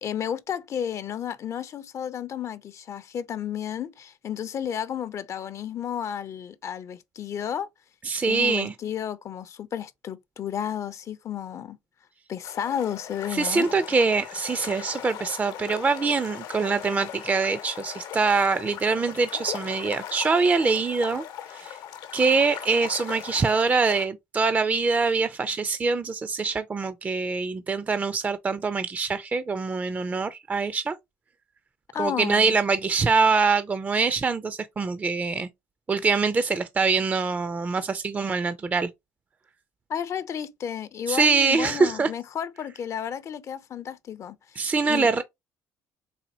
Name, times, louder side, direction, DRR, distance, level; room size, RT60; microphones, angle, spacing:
voice 1, 0.0-7.7 8.3-11.8 12.3-13.7 31.9-32.6 39.9-45.2, left 9 dB, 50° left, 0.4 m, -32 dB
voice 2, 8.0-8.7 13.3-21.2 21.5-21.8 22.1-30.9 32.0-35.5 35.9-38.9 41.1-42.1 44.6-45.2, right 4 dB, 25° right, 0.4 m, -24 dB
sound 1, 12.4-24.1, left 10 dB, 85° left, 0.8 m, -39 dB
4.1 x 2.5 x 2.7 m
supercardioid pair, 85°, 7 cm